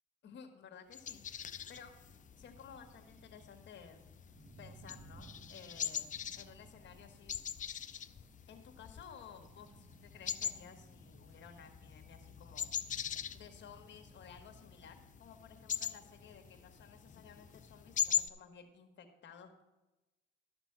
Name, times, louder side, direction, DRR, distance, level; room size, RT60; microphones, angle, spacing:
voice 1, 0.2-1.2 1.7-2.0 2.4-4.0 4.6-7.4 8.5-12.7 13.3-19.6, left 7 dB, 65° left, 6 dB, 1.4 m, -55 dB
sound 1, 0.9-18.3, left 8 dB, 40° left, 0.5 m, -42 dB
sound 2, 1.3-18.1, right 2 dB, 35° right, 1.7 m, -61 dB
12.5 x 6.0 x 5.7 m, 1.0 s
cardioid pair, 90°, 20 cm